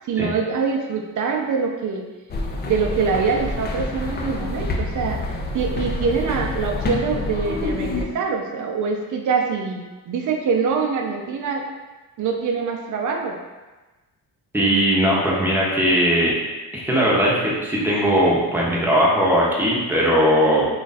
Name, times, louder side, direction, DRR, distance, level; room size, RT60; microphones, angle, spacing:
voice 1, 0.1-2.1 2.6-11.7 12.2-13.4, right 5 dB, 55° right, 2 dB, 0.6 m, -24 dB
sound 1, 2.3-8.0, left 2 dB, 30° left, 0.4 m, -27 dB
voice 2, 14.5-16.4 16.7-20.7, equal, 5° right, -5 dB, 0.8 m, -19 dB
3.1 x 2.4 x 4.0 m, 1.2 s
cardioid pair, 125°, 38 cm